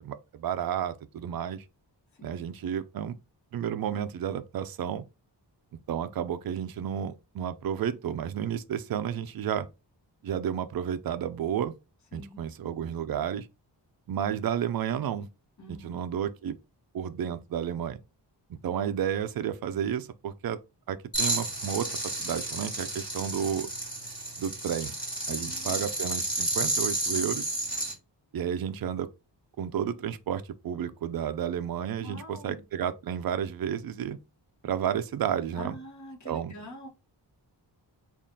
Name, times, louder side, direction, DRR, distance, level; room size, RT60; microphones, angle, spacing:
voice 1, 0.0-1.6 2.2-3.2 3.5-5.0 5.9-9.7 10.2-11.7 12.1-13.5 14.1-15.3 15.7-16.6 16.9-18.0 18.5-20.6 20.9-21.9 22.2-23.7 24.4-24.9 25.3-27.5 28.3-29.1 29.6-34.2 34.6-35.8 36.2-36.5, right 9 dB, 55° right, 0.4 m, -31 dB
voice 2, 15.6-16.0 25.4-25.9 32.0-32.6 35.6-36.9, left 1 dB, 40° left, 1.1 m, -45 dB
sound 1, 21.1-27.9, right 1 dB, 10° left, 1.3 m, -31 dB
3.6 x 2.4 x 3.8 m
wide cardioid pair, 145°, 44 cm